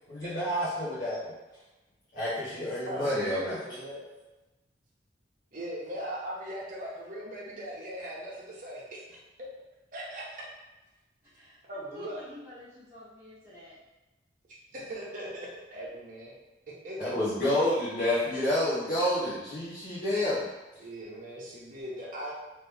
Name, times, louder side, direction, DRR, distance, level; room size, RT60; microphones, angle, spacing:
voice 1, 0.1-1.2 2.1-3.6 17.0-20.5, left 1 dB, 50° left, -11 dB, 1.0 m, -29 dB
voice 2, 2.9-4.0 5.5-9.5 9.9-10.4 11.6-12.3 14.7-16.3 16.8-17.1 20.8-22.3, right 1 dB, 45° right, -5 dB, 0.9 m, -39 dB
voice 3, 11.3-13.8, left 2 dB, 15° right, -13 dB, 1.3 m, -49 dB
3.2 x 2.9 x 3.4 m, 1.1 s
head